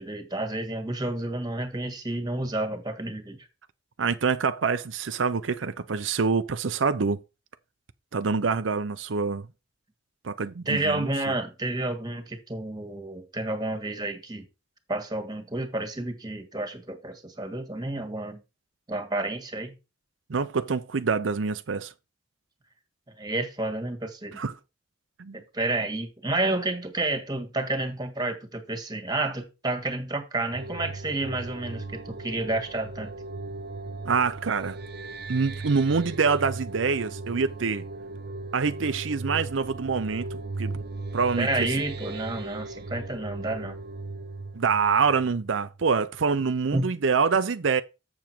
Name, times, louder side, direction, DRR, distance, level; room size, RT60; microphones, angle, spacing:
voice 1, 0.0-3.4 10.6-14.4 14.9-18.4 18.9-19.7 23.2-24.4 25.3-33.1 41.4-43.8 46.7-46.9, right 2 dB, 20° right, 1.7 m, -30 dB
voice 2, 4.0-7.2 8.1-9.5 10.2-11.1 20.3-21.9 24.4-24.5 25.2-25.4 34.0-34.8 35.3-37.8 38.5-40.8 41.1-41.5 44.5-47.8, right 5 dB, 85° right, 0.6 m, -25 dB
sound 1, 30.5-46.0, right 3 dB, 55° right, 1.0 m, -37 dB
7.2 x 7.1 x 4.4 m
head